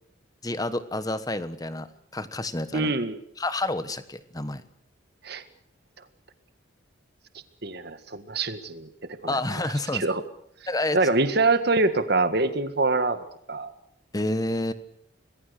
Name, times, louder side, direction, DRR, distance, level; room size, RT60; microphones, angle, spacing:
voice 1, 0.4-1.9 2.1-2.9 3.4-4.6 9.3-10.1 10.7-11.0 14.1-14.7, left 2 dB, 20° left, 13 dB, 1.2 m, -29 dB
voice 2, 2.7-3.2 5.2-5.4 7.6-8.9 9.2-10.2 10.9-13.2 13.5-13.7, right 3 dB, 50° right, 10 dB, 1.8 m, -25 dB
26.5 x 21.0 x 6.6 m, 0.73 s
head